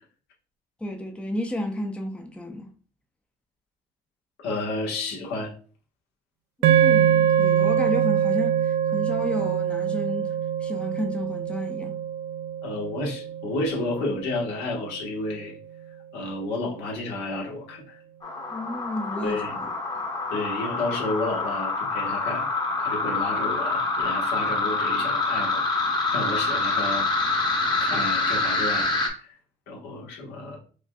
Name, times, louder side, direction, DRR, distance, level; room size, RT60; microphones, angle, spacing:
voice 1, 0.8-2.7 6.6-10.4 10.6-11.9 18.5-19.7, left 1 dB, 5° left, 0.5 m, -32 dB
voice 2, 4.4-5.5 12.6-15.6 16.1-18.0 19.2-19.6 20.3-22.5 22.8-25.8 26.1-27.1 27.8-29.4 29.7-30.6, left 2 dB, 90° left, 1.4 m, -31 dB
sound 1, 6.6-15.0, right 9 dB, 85° right, 0.5 m, -24 dB
sound 2, 18.2-29.1, left 3 dB, 25° left, 1.0 m, -26 dB
5.1 x 2.5 x 2.3 m
cardioid pair, 110°, 17 cm